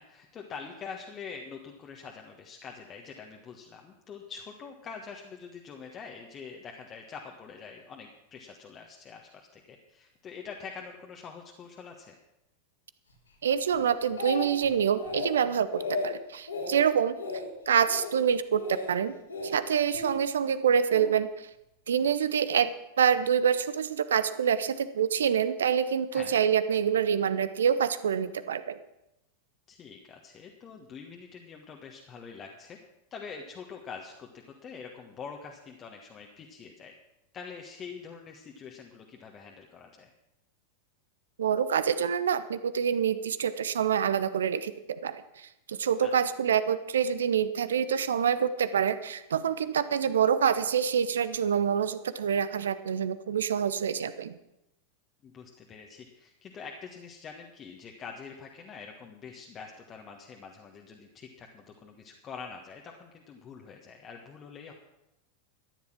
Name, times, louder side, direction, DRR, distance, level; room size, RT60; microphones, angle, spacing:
voice 1, 0.0-12.1 26.1-26.4 29.7-32.8 33.1-36.9 37.3-40.1 46.0-46.1 55.2-64.7, left 5 dB, 25° left, 1 dB, 1.4 m, -45 dB
voice 2, 13.4-17.2 17.7-19.1 19.4-21.3 21.9-28.8 41.4-44.7 45.0-54.4, right 8 dB, 65° right, 14 dB, 0.8 m, -26 dB
Speech, 13.7-14.7 15.0-15.4 15.7-16.1 16.5-16.8 17.1-17.5 17.8-18.1 18.6-18.9 19.3-20.1 20.9-21.1, left 3 dB, 75° left, 3.1 m, -35 dB
13.5 x 10.5 x 6.1 m, 0.88 s
figure-of-eight pair, 90°, 0 cm